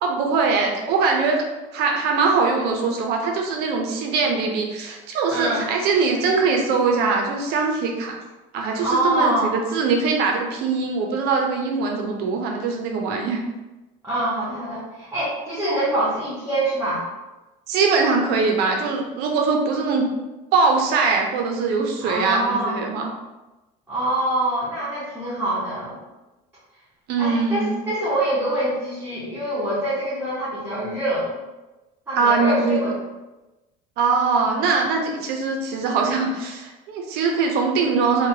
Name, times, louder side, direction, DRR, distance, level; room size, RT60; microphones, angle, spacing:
voice 1, 0.0-1.4 1.7-8.2 8.5-13.4 17.7-20.1 20.5-23.1 27.1-27.8 32.2-32.8 34.0-38.3, right 4 dB, 60° right, 2 dB, 0.4 m, -22 dB
voice 2, 5.3-5.6 8.8-9.5 14.0-17.0 22.0-22.8 23.9-26.0 27.2-31.3 32.1-32.9, right 1 dB, 10° right, -11 dB, 0.8 m, -25 dB
3.1 x 2.1 x 2.7 m, 1.1 s
cardioid pair, 155°, 19 cm